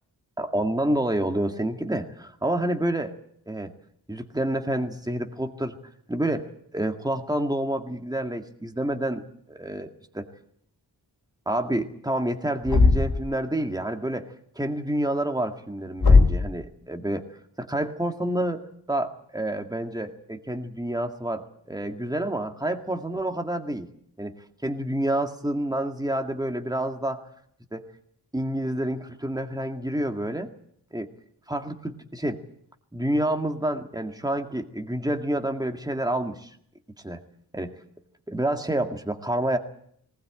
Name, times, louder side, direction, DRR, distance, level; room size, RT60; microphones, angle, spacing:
voice 1, 0.4-3.2 3.5-3.7 4.1-5.8 6.1-10.3 11.5-17.2 17.6-18.6 18.9-23.9 24.2-24.3 24.6-27.2 27.7-27.8 28.3-30.5 30.9-31.1 31.5-32.4 32.9-36.5 37.0-37.2 37.5-37.7 38.3-39.6, right 1 dB, 10° right, 5 dB, 1.9 m, -28 dB
Thump thud, 12.7-13.3 16.0-16.5, left 4 dB, 70° left, 3.6 m, -17 dB
20.0 x 19.5 x 8.9 m, 0.67 s
wide cardioid pair, 85°, 40 cm